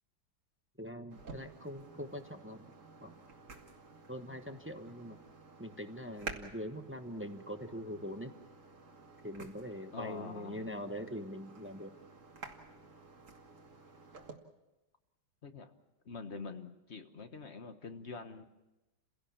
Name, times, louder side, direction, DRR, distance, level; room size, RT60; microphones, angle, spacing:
voice 1, 0.8-2.7 3.0-3.2 4.1-5.2 5.6-8.3 9.2-12.0, equal, 10° right, 7 dB, 0.6 m, -43 dB
sound 1, 1.1-14.3, right 3 dB, 40° right, 2.0 m, -51 dB
voice 2, 9.9-10.8 15.4-15.7 16.0-18.4, left 4 dB, 40° left, 8 dB, 1.3 m, -45 dB
29.5 x 17.0 x 7.2 m, 1.0 s
omnidirectional pair, 2.2 m